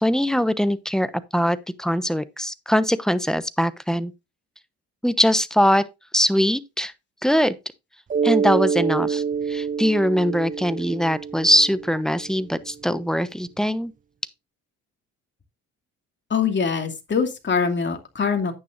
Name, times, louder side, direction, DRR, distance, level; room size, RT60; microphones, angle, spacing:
voice 1, 0.0-4.1 5.0-5.8 6.1-6.9 7.2-7.6 8.2-13.9, equal, ahead, 1.0 m, -22 dB
Mallet percussion, 8.1-12.5, right 6 dB, 25° right, 0.5 m, -26 dB
voice 2, 16.3-18.5, left 6 dB, 35° left, 2.6 m, -23 dB
10.5 x 9.4 x 2.6 m
cardioid pair, 90°, 30 cm